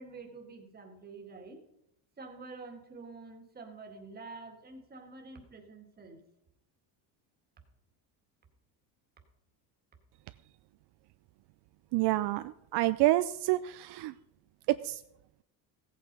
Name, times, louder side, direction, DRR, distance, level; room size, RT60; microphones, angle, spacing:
voice 1, 0.0-1.6 2.2-6.2, right 3 dB, 20° right, 3 dB, 1.9 m, -47 dB
voice 2, 11.9-14.2 14.7-15.0, right 17 dB, 70° right, 13 dB, 0.5 m, -28 dB
16.0 x 8.4 x 5.3 m, 0.79 s
cardioid pair, 180°, 42 cm